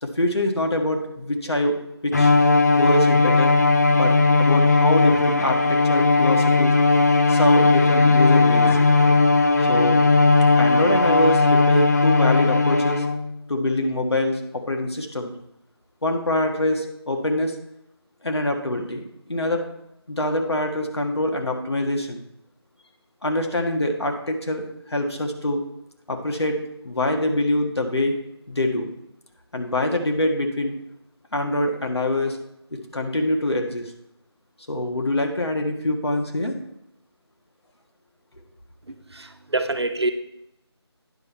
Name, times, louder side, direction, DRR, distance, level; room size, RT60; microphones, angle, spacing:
voice 1, 0.0-1.8 2.0-2.3 2.8-3.6 3.9-4.1 4.4-6.7 7.3-8.8 9.7-10.0 10.6-13.0 13.5-15.3 16.0-17.6 18.2-19.6 20.1-22.2 23.2-25.6 26.1-26.6 26.8-28.1 28.5-28.9 29.5-30.7 31.3-32.4 32.7-33.9 34.7-36.5, left 1 dB, 70° left, 3 dB, 1.7 m, -24 dB
Bowed string instrument, 2.1-13.3, left 3 dB, 40° left, 0.6 m, -17 dB
voice 2, 39.1-40.1, right 2 dB, 70° right, 7 dB, 1.0 m, -25 dB
9.8 x 6.5 x 4.4 m, 0.82 s
figure-of-eight pair, 165°, 14 cm